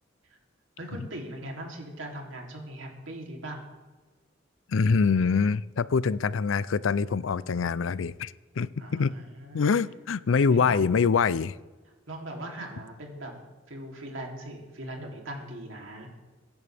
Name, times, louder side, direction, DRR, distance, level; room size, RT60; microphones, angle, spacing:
voice 1, 0.8-3.6 8.8-9.7 10.5-11.0 12.1-13.3 13.7-16.1, right 1 dB, 80° right, 0 dB, 3.2 m, -40 dB
voice 2, 4.7-9.1 9.5-11.5, left 5 dB, 80° left, 18 dB, 0.5 m, -25 dB
23.5 x 10.5 x 3.5 m, 1.3 s
head